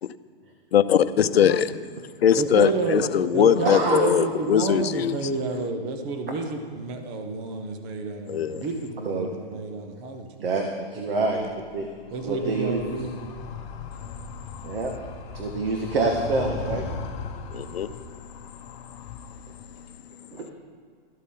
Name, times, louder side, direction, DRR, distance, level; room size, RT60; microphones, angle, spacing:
voice 1, 0.7-1.8 2.2-5.3 8.3-8.6 17.5-17.9, left 9 dB, 75° left, 12 dB, 0.8 m, -21 dB
voice 2, 2.4-10.3 11.0-11.5 12.1-13.2, right 3 dB, 15° right, 6 dB, 0.5 m, -30 dB
voice 3, 3.6-4.0 9.0-9.3 10.4-11.4 11.7-11.9 12.2-12.8 14.6-14.9 15.3-16.8 20.3-20.5, right 3 dB, 65° right, 1 dB, 1.7 m, -26 dB
Animal, 11.3-19.9, left 5 dB, 30° left, 1.5 m, -38 dB
14.0 x 12.5 x 3.8 m, 2.1 s
hypercardioid pair, 160°, 31 cm